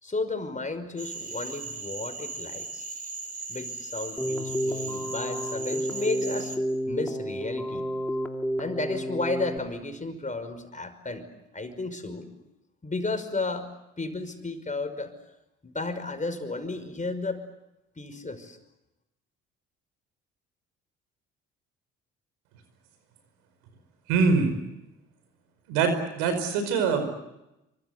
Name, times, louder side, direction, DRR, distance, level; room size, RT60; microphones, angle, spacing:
voice 1, 0.0-2.8 3.5-6.5 6.9-7.9 8.6-11.3 11.5-12.3 12.8-13.7 14.0-15.1 15.6-17.4 18.0-18.6, left 3 dB, 25° left, 9 dB, 5.5 m, -33 dB
Cricket / Frog, 1.0-6.6, right 3 dB, 25° right, 5.0 m, -38 dB
Keyboard (musical), 4.2-9.6, equal, 5° left, 2.9 m, -31 dB
voice 2, 24.1-24.5 25.7-27.2, right 5 dB, 80° right, 8 dB, 5.0 m, -24 dB
26.5 x 25.0 x 8.2 m, 0.92 s
hypercardioid pair, 55°, 32 cm